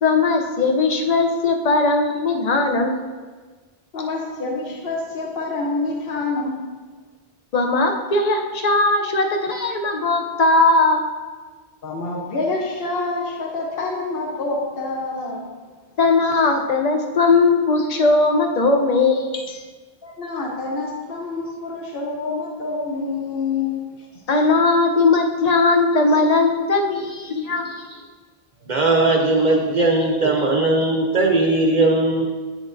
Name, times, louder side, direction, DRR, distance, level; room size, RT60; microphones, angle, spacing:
voice 1, 0.0-3.0 7.5-11.1 16.0-19.6 24.3-27.8, left 3 dB, 45° left, 3 dB, 0.6 m, -18 dB
voice 2, 3.9-6.6 11.8-15.4 20.0-23.8, left 3 dB, 65° left, -1 dB, 1.0 m, -27 dB
voice 3, 28.7-32.3, right 2 dB, 55° right, 0 dB, 0.7 m, -18 dB
8.3 x 6.2 x 2.6 m, 1.4 s
omnidirectional pair, 1.0 m